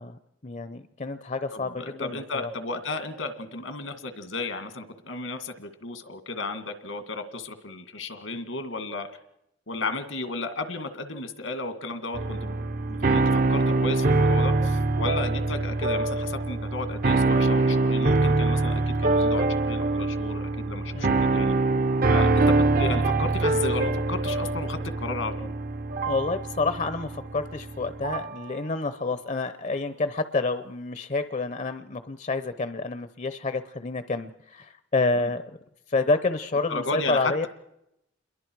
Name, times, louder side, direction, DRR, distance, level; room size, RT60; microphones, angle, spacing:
voice 1, 0.0-2.5 20.9-21.3 26.0-35.4 35.9-37.5, left 3 dB, 40° left, 11 dB, 0.7 m, -29 dB
voice 2, 1.5-9.1 9.7-12.6 12.9-21.6 22.1-25.5 35.2-35.3 36.7-37.5, left 3 dB, 85° left, 8 dB, 2.2 m, -34 dB
sound 1, 12.1-28.4, right 3 dB, 45° right, 0.8 m, -24 dB
29.0 x 22.0 x 4.7 m, 0.82 s
head